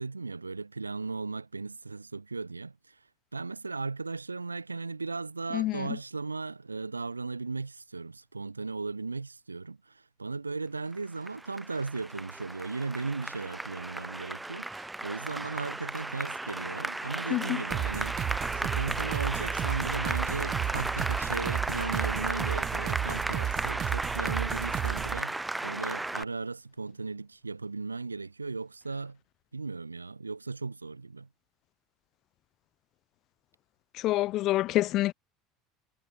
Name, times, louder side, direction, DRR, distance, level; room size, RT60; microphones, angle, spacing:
voice 1, 0.0-3.0 3.3-18.2 18.6-29.2 29.5-31.3, right 3 dB, 85° right, 3.7 m, -36 dB
voice 2, 5.5-6.0 17.3-17.6 33.9-35.1, left 16 dB, 45° left, 0.8 m, -27 dB
Applause, 10.9-26.2, right 2 dB, 10° right, 0.9 m, -34 dB
sound 1, 17.7-25.2, right 11 dB, 40° right, 0.8 m, -33 dB
figure-of-eight pair, 70°, 0 cm